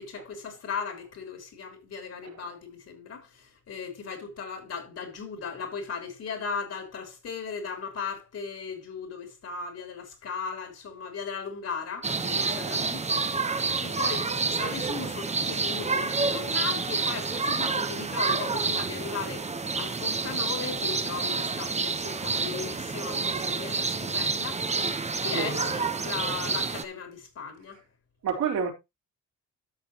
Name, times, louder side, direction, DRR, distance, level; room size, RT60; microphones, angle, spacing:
voice 1, 0.0-13.0 13.8-24.6 25.2-27.8, left 5 dB, 55° left, 3.7 m, -37 dB
sound 1, 12.0-26.8, right 4 dB, 20° right, 1.0 m, -29 dB
voice 2, 25.3-25.7 28.2-28.7, right 6 dB, 75° right, 4.1 m, -28 dB
13.0 x 6.6 x 3.0 m
cardioid pair, 90°, 30 cm